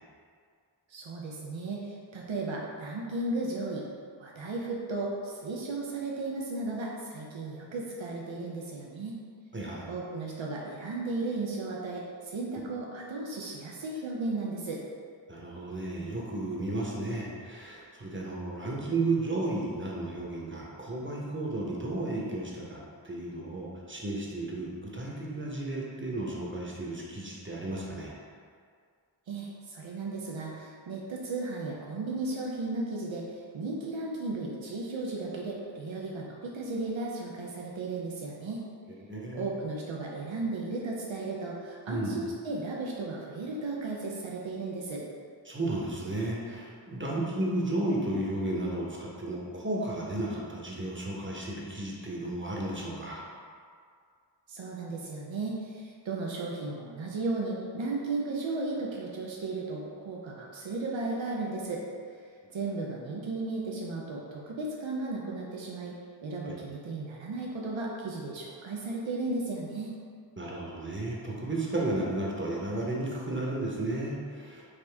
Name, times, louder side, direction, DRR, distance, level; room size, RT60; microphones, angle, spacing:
voice 1, 0.9-3.8 4.2-9.1 9.9-14.8 29.3-38.6 39.3-45.0 54.5-61.8 62.5-66.0 66.2-70.0, right 3 dB, 85° right, -2 dB, 0.6 m, -35 dB
voice 2, 9.5-9.9 15.3-28.1 39.0-39.5 41.9-42.1 45.5-53.2 66.4-66.5 70.4-74.7, right 2 dB, 25° right, -3 dB, 0.8 m, -33 dB
5.0 x 2.6 x 3.3 m, 2.1 s
wide cardioid pair, 55°, 45 cm